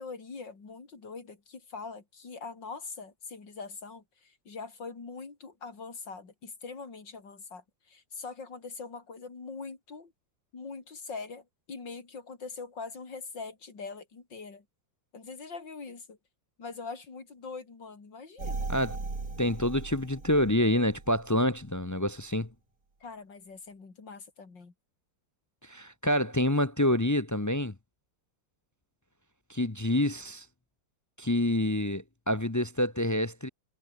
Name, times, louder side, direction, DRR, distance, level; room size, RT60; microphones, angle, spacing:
voice 1, 0.0-10.1 10.5-14.6 15.1-16.2 16.6-18.7 23.0-24.7, left 4 dB, 65° left, 4.4 m, -43 dB
sound 1, 18.4-21.2 21.7-21.8, right 3 dB, 45° right, 4.1 m, -38 dB
voice 2, 19.4-22.5 25.6-27.7 29.5-30.5 31.2-33.5, left 1 dB, 25° left, 0.4 m, -27 dB
omnidirectional pair, 2.1 m